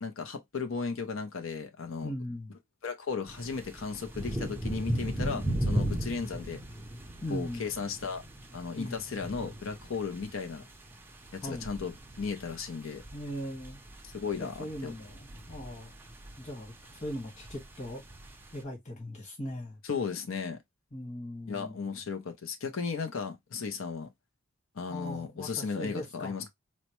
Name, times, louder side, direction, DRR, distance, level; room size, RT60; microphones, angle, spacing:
voice 1, 0.0-2.1 2.8-6.6 7.3-8.2 8.5-10.6 11.3-13.0 14.0-14.9 19.8-20.6 21.5-24.1 24.8-26.5, left 5 dB, 70° left, 0.6 m, -35 dB
voice 2, 2.0-2.5 7.2-7.7 8.7-9.0 11.4-11.7 13.1-13.8 14.4-15.9 16.4-18.0 18.5-19.8 20.9-21.7 24.9-26.5, equal, 35° left, 1.5 m, -39 dB
sound 1, 3.3-18.6, right 1 dB, 10° right, 0.5 m, -38 dB
4.2 x 2.1 x 3.0 m
head